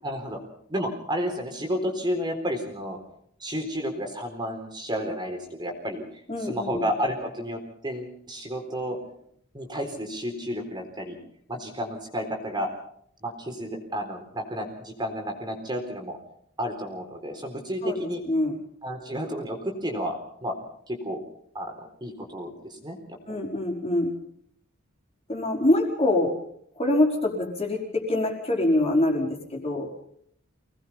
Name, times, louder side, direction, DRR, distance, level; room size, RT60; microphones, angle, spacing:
voice 1, 0.0-0.4 0.7-3.0 3.4-9.0 9.5-11.2 11.5-12.7 13.2-16.2 16.6-18.2 18.8-20.5 20.9-21.2 21.5-23.4, equal, 20° right, 3 dB, 4.0 m, -31 dB
voice 2, 6.3-6.8 17.8-18.6 23.3-24.1 25.3-26.4 26.8-29.9, left 1 dB, 30° left, 1 dB, 4.9 m, -25 dB
26.0 x 19.0 x 5.7 m, 0.69 s
head